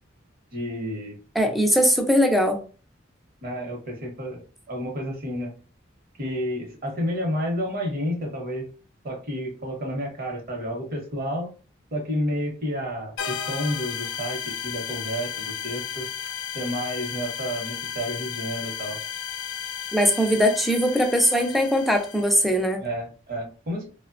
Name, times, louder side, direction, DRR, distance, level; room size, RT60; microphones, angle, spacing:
voice 1, 0.5-1.2 3.4-4.4 4.7-5.5 6.2-8.7 9.0-11.5 11.9-16.1 16.5-19.0 22.8-23.9, equal, 50° right, 1 dB, 0.8 m, -30 dB
voice 2, 1.4-2.6 19.9-22.8, equal, ahead, 4 dB, 0.3 m, -20 dB
sound 1, 13.2-22.6, left 8 dB, 90° left, 0.4 m, -34 dB
3.0 x 2.1 x 2.4 m, 0.37 s
head